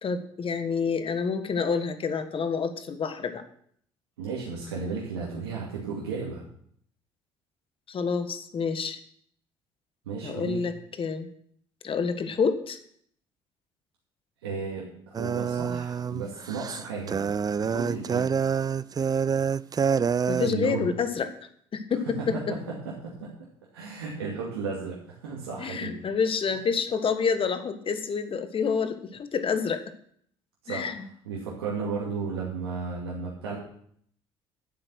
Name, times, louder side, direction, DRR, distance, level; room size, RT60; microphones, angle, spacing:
voice 1, 0.0-3.4 7.9-9.0 10.2-10.7 11.0-11.3 11.8-12.8 20.3-21.3 21.7-22.5 25.6-29.8 30.7-31.1, left 5 dB, 45° left, 10 dB, 1.6 m, -28 dB
voice 2, 4.2-6.4 10.0-10.6 14.4-17.2 17.6-18.3 20.4-20.9 22.3-22.4 23.0-23.3 23.7-26.0 30.6-31.0 31.2-33.6, right 5 dB, 90° right, -5 dB, 2.3 m, -34 dB
sound 1, 15.1-20.5, right 6 dB, 30° right, 0.4 m, -27 dB
11.5 x 7.9 x 6.2 m, 0.64 s
hypercardioid pair, 55°, 13 cm